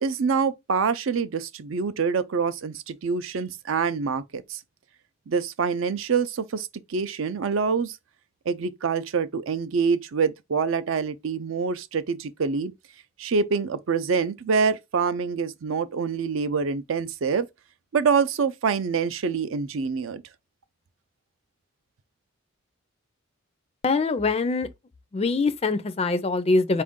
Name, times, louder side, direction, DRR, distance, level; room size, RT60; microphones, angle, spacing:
voice 1, 0.0-4.6 5.3-8.0 8.5-12.7 13.2-17.5 17.9-20.2, right 5 dB, 70° right, 0.5 m, -26 dB
voice 2, 23.8-24.7 25.1-26.8, left 3 dB, 30° left, 0.4 m, -23 dB
4.4 x 2.5 x 3.6 m
head